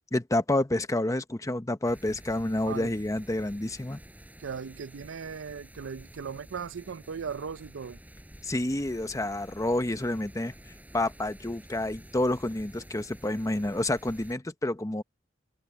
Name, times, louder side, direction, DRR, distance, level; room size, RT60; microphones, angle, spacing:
voice 1, 0.1-4.0 8.4-10.5 10.9-15.0, left 1 dB, 15° left, 0.9 m, -29 dB
sound 1, 1.8-14.4, equal, 10° right, 6.9 m, -50 dB
voice 2, 4.4-8.0, right 6 dB, 70° right, 0.5 m, -38 dB
head